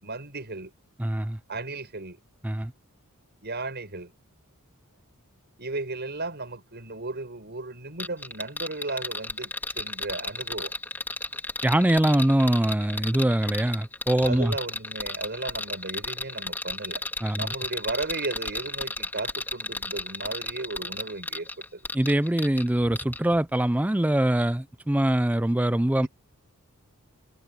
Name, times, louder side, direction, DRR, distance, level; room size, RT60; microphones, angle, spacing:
voice 1, 0.0-0.7 1.5-2.2 3.4-4.1 5.6-10.7 14.2-17.0 17.3-21.8 26.0-26.1, right 2 dB, 50° right, 6.4 m, -35 dB
voice 2, 1.0-1.4 2.4-2.7 11.6-14.5 17.2-17.5 21.9-26.1, right 1 dB, 5° right, 0.4 m, -23 dB
sound 1, 8.0-22.7 23.0-23.2, left 2 dB, 10° left, 2.6 m, -33 dB
head